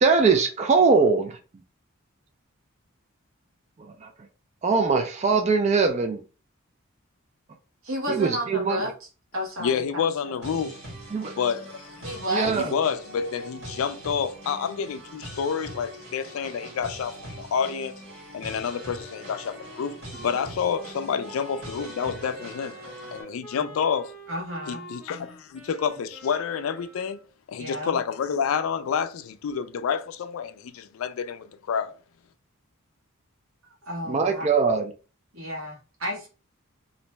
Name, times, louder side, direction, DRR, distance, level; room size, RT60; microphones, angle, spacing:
voice 1, 0.0-1.4 4.0-4.1 4.6-6.2 8.1-8.8 11.1-11.3 12.3-12.7 34.1-34.9, right 4 dB, 30° right, 0.3 m, -21 dB
voice 2, 7.8-9.1 9.3-10.3 12.0-12.6 24.3-24.9 27.6-28.0 33.9-34.5 35.3-36.3, equal, 80° right, 1.1 m, -32 dB
voice 3, 9.6-10.8 11.4-12.0 12.5-18.0 18.3-19.9 20.2-22.8 23.1-24.1 24.7-27.2 27.5-32.0, left 7 dB, 80° left, 0.3 m, -29 dB
sound 1, 10.4-23.2, equal, 55° right, 1.4 m, -42 dB
Wind instrument woodwind instrument, 18.4-27.3, right 1 dB, 5° right, 0.7 m, -46 dB
2.5 x 2.1 x 3.0 m
head